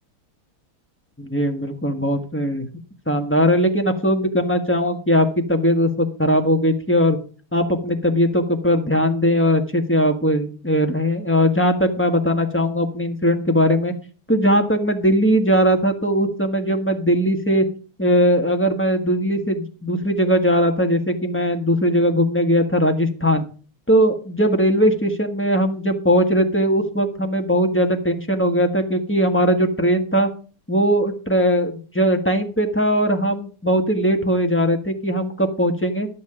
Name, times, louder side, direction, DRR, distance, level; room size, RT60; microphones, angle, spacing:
voice 1, 1.2-2.7 3.1-7.2 7.5-13.9 14.3-17.6 18.0-23.4 23.9-30.3 30.7-36.1, equal, 5° left, 5 dB, 1.2 m, -19 dB
11.5 x 8.5 x 5.0 m, 0.38 s
omnidirectional pair, 2.4 m